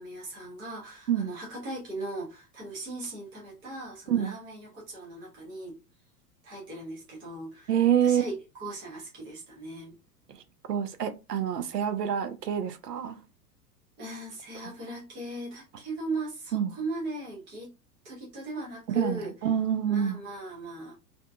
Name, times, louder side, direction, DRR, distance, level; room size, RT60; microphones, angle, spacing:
voice 1, 0.0-5.8 6.4-7.7 8.0-10.0 14.0-17.7 18.0-19.3 19.9-20.9, right 2 dB, 10° right, 0.3 m, -38 dB
voice 2, 7.7-8.2 10.7-13.2 16.5-16.8 18.9-20.2, right 9 dB, 75° right, 0.6 m, -27 dB
2.6 x 2.2 x 2.3 m
figure-of-eight pair, 95°, 48 cm